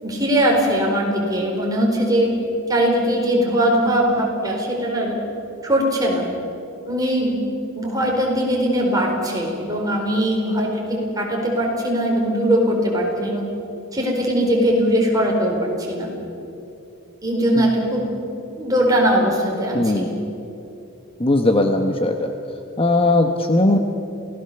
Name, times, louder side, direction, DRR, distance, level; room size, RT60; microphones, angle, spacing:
voice 1, 0.0-2.3 2.7-5.2 5.6-6.3 6.9-7.4 7.7-13.4 13.9-16.1 17.2-18.1 18.6-20.1, equal, 20° right, -1 dB, 4.5 m, -20 dB
voice 2, 19.7-20.1 21.2-22.3 22.8-23.8, left 2 dB, 25° left, 5 dB, 1.0 m, -18 dB
27.5 x 17.5 x 6.9 m, 2.8 s
head